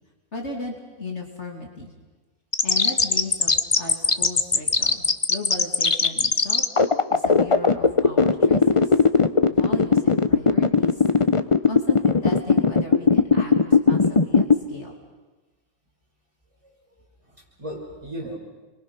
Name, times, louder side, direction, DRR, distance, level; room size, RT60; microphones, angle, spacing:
voice 1, 0.3-1.9 2.6-6.6 7.1-8.9 9.5-11.0 11.7-14.9, left 2 dB, 50° left, 1 dB, 3.0 m, -36 dB
sound 1, 2.5-14.5, left 4 dB, 30° left, 0.7 m, -18 dB
voice 2, 16.9-18.4, equal, 20° right, -2 dB, 6.0 m, -37 dB
29.5 x 23.0 x 6.0 m, 1.2 s
omnidirectional pair, 1.5 m